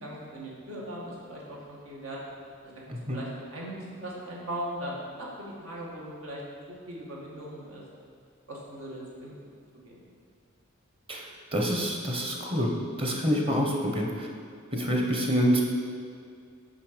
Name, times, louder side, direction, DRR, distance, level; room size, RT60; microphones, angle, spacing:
voice 1, 0.0-2.2 2.6-2.7 3.1-6.4 6.7-7.8 8.5-9.3 9.8-10.0, right 1 dB, 85° right, -4 dB, 1.6 m, -39 dB
voice 2, 11.5-12.7 13.0-14.3 14.7-15.6, equal, 25° right, 0 dB, 0.9 m, -26 dB
6.4 x 5.3 x 5.1 m, 2.2 s
head